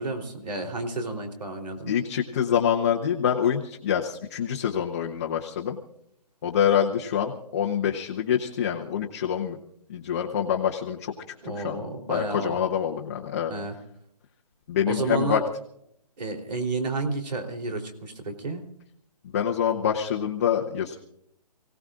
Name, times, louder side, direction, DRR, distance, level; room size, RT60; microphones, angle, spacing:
voice 1, 0.0-1.9 11.4-12.6 13.5-13.8 14.9-15.4 16.2-18.6, right 2 dB, 75° right, 5 dB, 3.5 m, -31 dB
voice 2, 1.9-5.8 6.4-9.6 9.9-11.1 11.4-11.8 12.1-13.5 14.7-15.4 19.3-21.0, left 8 dB, 25° left, -1 dB, 0.9 m, -26 dB
29.0 x 17.0 x 2.5 m, 0.74 s
hypercardioid pair, 170°, 21 cm